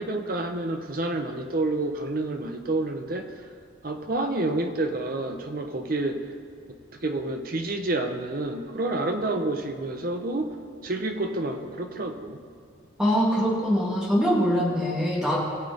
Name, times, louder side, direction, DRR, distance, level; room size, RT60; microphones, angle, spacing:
voice 1, 0.0-3.3 3.8-6.2 6.9-10.6 10.8-12.4, right 2 dB, 45° right, 5 dB, 0.9 m, -29 dB
voice 2, 13.0-15.4, equal, 5° right, -4 dB, 1.8 m, -23 dB
19.0 x 7.4 x 3.6 m, 2.4 s
head